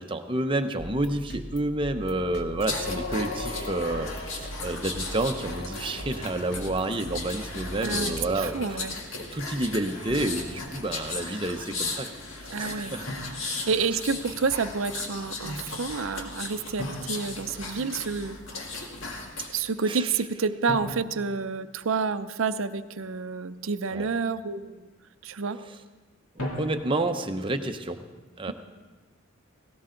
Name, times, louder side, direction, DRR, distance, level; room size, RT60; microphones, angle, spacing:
voice 1, 0.0-8.6 9.3-12.1 12.4-13.0 13.4-13.7 19.9-20.1 23.9-24.1 26.4-28.0 28.4-28.5, right 2 dB, 25° right, 6 dB, 0.7 m, -29 dB
sound 1, 0.8-9.0, equal, 45° left, 1.2 m, -41 dB
sound 2, 2.6-19.6 20.0-20.2, left 3 dB, 65° left, 1.9 m, -36 dB
voice 2, 7.8-8.9 12.5-13.0 13.4-18.4 19.5-24.9 25.2-25.6, right 5 dB, 65° right, 11 dB, 0.6 m, -29 dB
Drum, 10.6-10.9 13.1-14.2 16.8-18.2 20.7-22.4 26.4-27.3, left 1 dB, 85° left, 2.7 m, -39 dB
17.5 x 17.0 x 3.9 m, 1.3 s
head